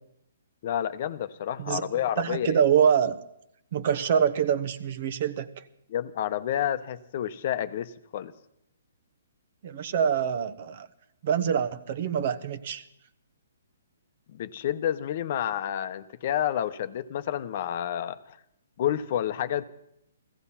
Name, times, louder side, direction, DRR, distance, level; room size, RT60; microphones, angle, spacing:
voice 1, 0.6-2.6 5.9-8.3 14.3-18.4 18.8-19.6, left 10 dB, 45° left, 13 dB, 0.8 m, -29 dB
voice 2, 2.2-3.2 3.7-5.5 9.6-10.9 11.2-12.8, right 8 dB, 50° right, 12 dB, 1.0 m, -25 dB
15.5 x 15.0 x 5.7 m, 0.76 s
hypercardioid pair, 150°, 0 cm